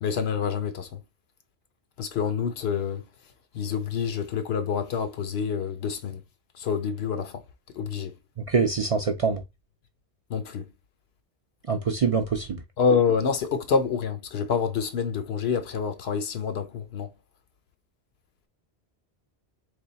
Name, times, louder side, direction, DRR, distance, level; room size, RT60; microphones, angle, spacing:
voice 1, 0.0-1.0 2.0-3.0 3.5-6.2 6.6-7.4 7.8-8.1 10.3-10.6 12.8-17.1, left 6 dB, 75° left, 0.9 m, -27 dB
voice 2, 8.4-9.4 11.7-12.6, right 5 dB, 45° right, 0.4 m, -24 dB
3.4 x 2.3 x 3.9 m
omnidirectional pair, 1.1 m